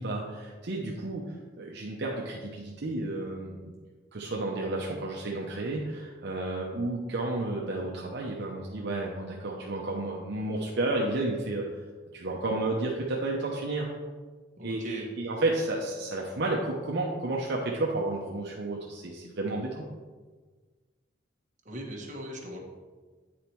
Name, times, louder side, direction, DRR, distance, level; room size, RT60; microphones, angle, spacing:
voice 1, 0.0-3.7 4.1-11.8 12.1-13.9 14.6-19.9, right 2 dB, 60° right, -2 dB, 0.8 m, -32 dB
voice 2, 14.6-15.0 21.6-22.6, equal, 40° right, 0 dB, 1.2 m, -39 dB
8.7 x 4.2 x 4.5 m, 1.4 s
head